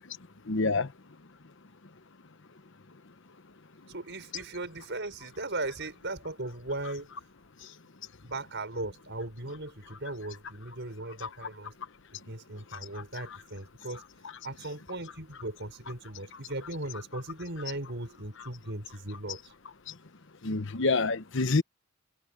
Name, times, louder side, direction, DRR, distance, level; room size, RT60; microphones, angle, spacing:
voice 1, 0.5-0.9 11.2-11.3 20.4-21.6, left 3 dB, 60° left, 1.0 m, -27 dB
voice 2, 3.9-7.1 8.2-11.7 12.1-14.0 14.4-19.4, right 2 dB, 55° right, 6.4 m, -38 dB
head